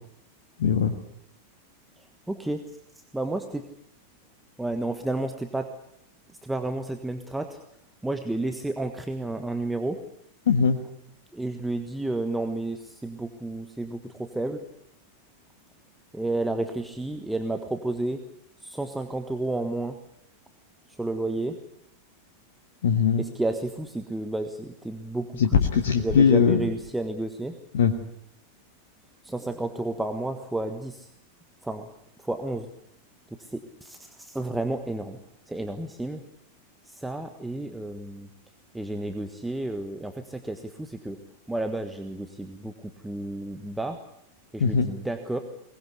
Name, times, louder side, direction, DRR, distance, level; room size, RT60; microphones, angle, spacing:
voice 1, 0.6-0.9 10.5-10.8 22.8-23.2 25.4-26.6 27.7-27.9 44.6-44.9, left 6 dB, 60° left, 6 dB, 1.5 m, -20 dB
voice 2, 2.0-2.6 3.1-3.7 4.6-5.7 6.4-7.6 8.0-10.0 11.3-14.6 16.1-18.2 18.6-20.0 21.0-21.6 23.2-25.6 25.9-27.6 29.2-31.1 31.6-31.9 32.2-32.7 33.4-35.2 35.5-36.2 36.8-38.3 38.7-41.2 41.5-44.0 44.5-45.4, right 2 dB, 5° right, 6 dB, 1.5 m, -31 dB
22.0 x 20.5 x 8.2 m, 0.74 s
figure-of-eight pair, 90°, 0 cm